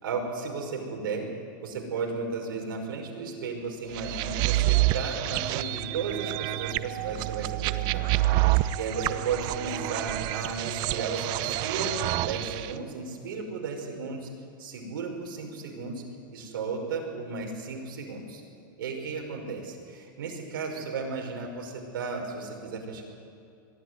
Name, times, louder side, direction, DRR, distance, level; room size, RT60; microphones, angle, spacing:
voice 1, 0.0-1.3 1.6-8.0 8.5-11.9 12.2-14.3 14.6-16.0 16.3-18.4 18.8-23.0, right 4 dB, 80° right, 1 dB, 5.6 m, -34 dB
sound 1, 3.9-12.7, right 16 dB, 35° right, 0.7 m, -28 dB
22.0 x 14.0 x 9.4 m, 2.6 s
supercardioid pair, 150°, 11 cm